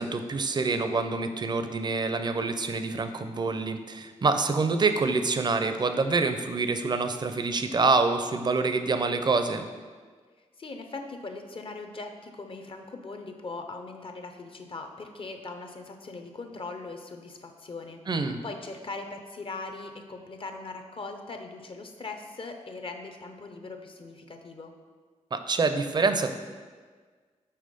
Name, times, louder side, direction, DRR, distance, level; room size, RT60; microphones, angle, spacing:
voice 1, 0.0-9.6 18.1-18.4 25.3-26.3, right 4 dB, 35° right, 8 dB, 0.5 m, -26 dB
voice 2, 10.6-24.7, left 3 dB, 45° left, 6 dB, 0.6 m, -40 dB
5.6 x 3.3 x 5.1 m, 1.5 s
cardioid pair, 75°, 12 cm